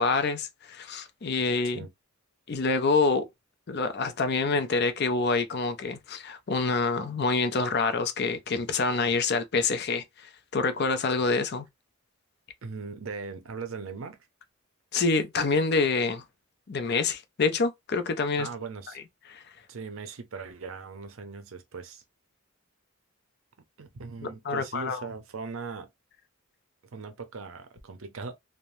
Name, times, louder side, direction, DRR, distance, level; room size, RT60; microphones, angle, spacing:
voice 1, 0.0-1.9 2.5-3.3 3.7-11.7 14.9-16.2 16.7-18.5 19.3-19.4 24.4-25.0, left 4 dB, 50° left, 0.5 m, -26 dB
voice 2, 12.6-14.2 18.4-19.0 19.7-22.0 23.8-25.9 26.9-28.3, right 4 dB, 65° right, 0.6 m, -39 dB
3.2 x 2.1 x 2.6 m
head